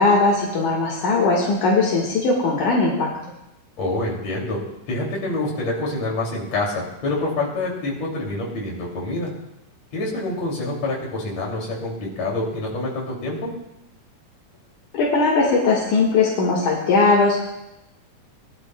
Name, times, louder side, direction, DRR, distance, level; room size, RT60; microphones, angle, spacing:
voice 1, 0.0-3.1 14.9-17.4, left 3 dB, 80° left, -4 dB, 3.3 m, -19 dB
voice 2, 3.8-4.6 4.9-9.3 9.9-13.5, left 2 dB, 55° left, -3 dB, 4.3 m, -26 dB
21.0 x 12.0 x 2.4 m, 0.88 s
omnidirectional pair, 3.5 m